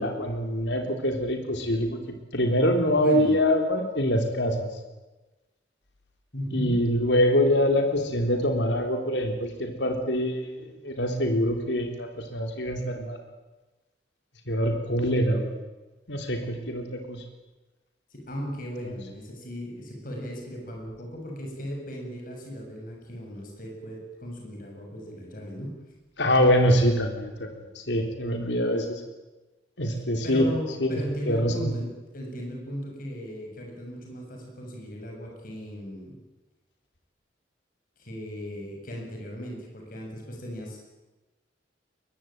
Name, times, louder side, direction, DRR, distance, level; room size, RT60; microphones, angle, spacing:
voice 1, 0.0-4.7 6.5-13.2 14.5-15.5 16.1-17.2 18.8-18.9 26.2-29.0 29.8-30.5 30.8-31.0 31.3-31.7, equal, 75° left, 5 dB, 3.7 m, -25 dB
voice 2, 3.0-3.3 6.3-6.8 18.1-25.8 30.2-36.2 38.0-40.8, equal, 50° left, 1 dB, 7.7 m, -36 dB
22.5 x 22.0 x 9.1 m, 1.1 s
head